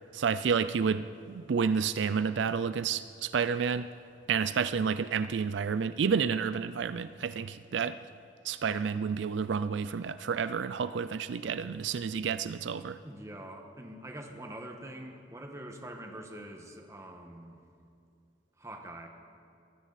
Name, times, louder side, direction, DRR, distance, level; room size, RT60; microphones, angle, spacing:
voice 1, 0.1-3.9 4.3-8.0 8.4-13.0, right 6 dB, 75° right, 13 dB, 0.4 m, -30 dB
voice 2, 13.0-17.6 18.6-19.1, right 1 dB, 15° right, 3 dB, 1.4 m, -44 dB
22.5 x 15.5 x 4.1 m, 2.6 s
head